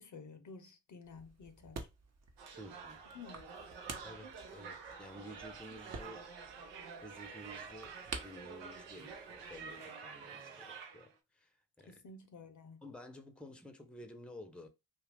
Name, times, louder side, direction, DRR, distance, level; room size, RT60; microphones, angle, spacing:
voice 1, 0.0-1.9 3.1-3.5 11.8-12.8, left 4 dB, 45° left, 0.7 m, -52 dB
sound 1, 1.0-9.8, right 4 dB, 40° right, 0.9 m, -51 dB
sound 2, 2.4-11.1, right 5 dB, 80° right, 0.8 m, -49 dB
voice 2, 2.6-3.0 4.0-12.0 12.8-14.7, equal, ahead, 0.7 m, -53 dB
2.6 x 2.4 x 3.4 m
supercardioid pair, 50°, 41 cm